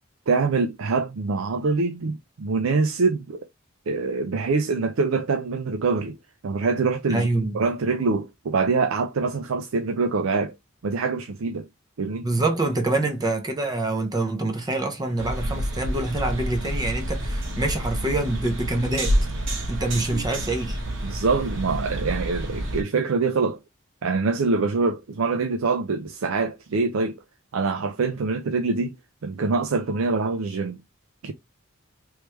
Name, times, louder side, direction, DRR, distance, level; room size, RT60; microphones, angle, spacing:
voice 1, 0.3-3.4 3.9-6.2 6.4-7.3 7.5-10.5 10.8-11.7 12.0-12.3 20.1-20.2 21.0-23.6 24.0-27.2 27.5-29.0 29.2-30.8 31.2-31.3, right 4 dB, 90° right, 0.5 m, -24 dB
voice 2, 7.1-7.6 12.2-19.2 19.7-20.8, right 2 dB, 20° right, 0.7 m, -26 dB
sound 1, 15.2-22.8, right 1 dB, 65° right, 1.4 m, -28 dB
3.3 x 3.2 x 3.1 m
head